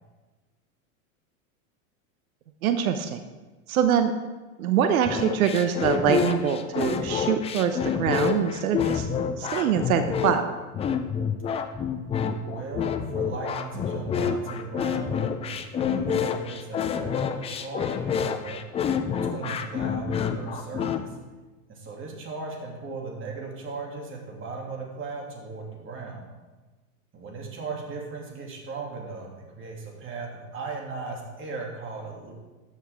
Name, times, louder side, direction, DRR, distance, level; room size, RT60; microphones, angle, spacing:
voice 1, 2.6-3.2 3.7-4.1 4.6-9.1 9.4-10.5, right 8 dB, 90° right, 8 dB, 0.8 m, -24 dB
sound 1, 5.0-21.0, left 7 dB, 15° left, 0.4 m, -28 dB
voice 2, 12.5-21.1 21.7-26.2 27.1-32.3, right 4 dB, 30° right, -1 dB, 2.5 m, -37 dB
13.0 x 7.1 x 3.5 m, 1.2 s
supercardioid pair, 120°, 41 cm